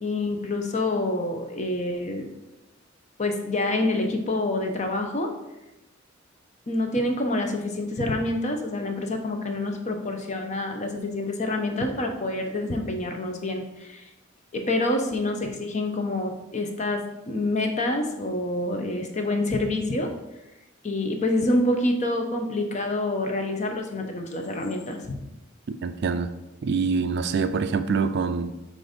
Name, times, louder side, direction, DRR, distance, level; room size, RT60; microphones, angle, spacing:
voice 1, 0.0-2.3 3.2-5.3 6.7-14.1 14.5-20.1 20.8-25.2, left 2 dB, 35° left, 4 dB, 0.7 m, -27 dB
voice 2, 25.8-26.3 26.6-28.5, right 5 dB, 55° right, 10 dB, 0.4 m, -25 dB
7.6 x 2.6 x 5.0 m, 0.97 s
head